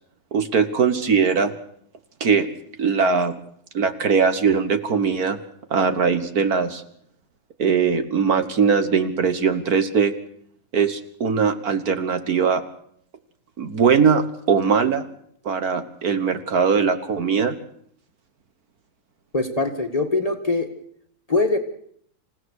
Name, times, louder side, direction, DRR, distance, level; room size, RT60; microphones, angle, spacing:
voice 1, 0.3-1.5 2.2-2.5 2.8-3.3 3.7-5.4 5.7-6.8 7.6-10.1 10.7-12.6 13.6-15.1 15.5-17.6, right 6 dB, 60° right, 9 dB, 1.9 m, -20 dB
voice 2, 19.3-20.7 21.3-21.6, left 3 dB, 20° left, 5 dB, 1.7 m, -22 dB
27.5 x 16.5 x 6.5 m, 0.66 s
omnidirectional pair, 1.9 m